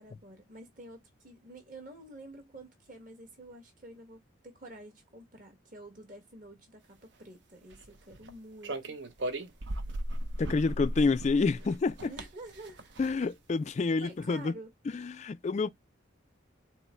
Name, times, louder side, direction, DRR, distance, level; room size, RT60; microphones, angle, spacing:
voice 1, 0.0-9.0 12.0-12.9 14.0-14.7, right 1 dB, 40° right, 1.5 m, -49 dB
sound 1, 7.7-8.3 8.6-13.3, right 1 dB, 60° right, 0.8 m, -37 dB
voice 2, 10.4-12.1 13.0-14.5 14.9-15.7, left 4 dB, 35° left, 0.3 m, -28 dB
4.5 x 2.1 x 4.3 m
head